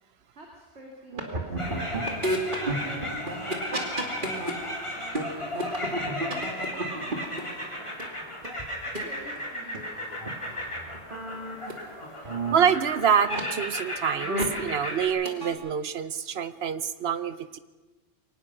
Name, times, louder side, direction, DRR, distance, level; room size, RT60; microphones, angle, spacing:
voice 1, 0.3-2.1 2.6-3.4 3.7-5.9 6.3-8.4 8.8-10.7, right 1 dB, 90° right, 0 dB, 2.9 m, -49 dB
sound 1, 1.1-4.5 4.9-8.0 8.4-8.5 8.9-9.0 9.4-9.5 9.7-9.8 10.2-10.3 10.6-11.7 12.0-12.6 13.2-13.4 14.0-14.7 14.9-15.5, right 1 dB, 50° right, 2.7 m, -32 dB
sound 2, 1.6-15.1, left 1 dB, 25° left, 3.3 m, -35 dB
voice 2, 12.5-17.6, right 7 dB, 70° right, 14 dB, 1.0 m, -26 dB
23.0 x 19.0 x 6.0 m, 1.2 s
omnidirectional pair, 1.1 m